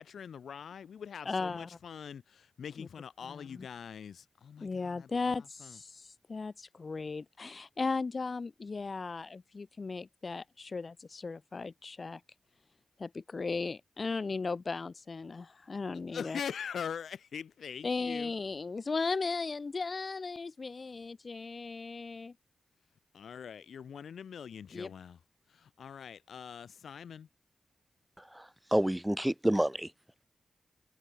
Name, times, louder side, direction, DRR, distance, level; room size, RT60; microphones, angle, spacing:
voice 1, 0.0-5.1 5.6-5.8 16.1-18.3 23.1-25.2 25.5-27.3, left 7 dB, 85° left, 1.2 m, -43 dB
voice 2, 1.2-1.7 2.8-2.9 3.3-3.7 4.6-12.2 13.0-16.4 17.8-22.3 24.7-24.9, left 4 dB, 50° left, 2.4 m, -36 dB
voice 3, 28.2-29.9, right 1 dB, 10° right, 1.7 m, -29 dB
cardioid pair, 50°, 0 cm